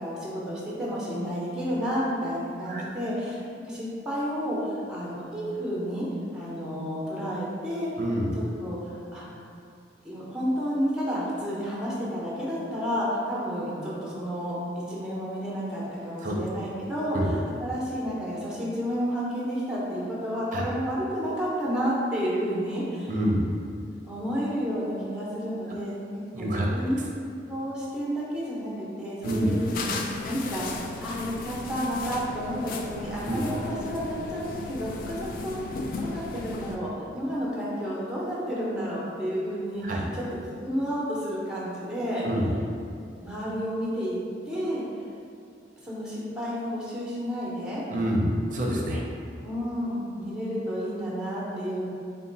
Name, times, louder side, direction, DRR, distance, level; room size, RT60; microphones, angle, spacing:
voice 1, 0.0-6.1 6.3-7.9 8.3-9.4 10.0-23.1 24.1-26.0 26.4-27.0 27.5-29.9 30.2-35.6 36.0-40.2 40.6-42.3 43.2-44.2 44.5-44.8 45.8-47.8 49.4-51.9, equal, 5° right, -7 dB, 0.8 m, -31 dB
voice 2, 8.0-8.3 16.2-16.4 17.1-17.3 20.5-20.6 23.1-23.4 26.3-26.7 29.2-29.5 33.2-33.4 39.8-40.1 42.2-42.5 47.9-49.0, equal, 45° right, -2 dB, 0.6 m, -27 dB
sound 1, 29.2-36.8, left 3 dB, 50° left, 0.3 m, -36 dB
4.0 x 2.2 x 3.9 m, 2.4 s
head